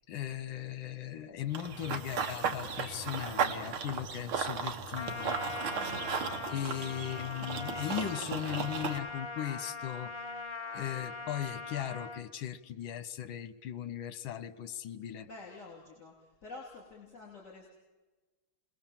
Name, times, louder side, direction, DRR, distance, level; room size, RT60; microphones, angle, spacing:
voice 1, 0.1-5.4 6.4-10.1 10.7-15.3, left 10 dB, 70° left, 12 dB, 1.7 m, -38 dB
Run / Bird vocalization bird call bird song, 1.5-9.0, right 6 dB, 80° right, 2.2 m, -36 dB
Trumpet, 4.9-12.2, left 4 dB, 15° left, 1.3 m, -41 dB
voice 2, 5.7-6.1 6.6-6.9 15.2-17.7, left 3 dB, 35° left, -2 dB, 3.7 m, -50 dB
30.0 x 21.0 x 7.4 m, 1.3 s
omnidirectional pair, 2.3 m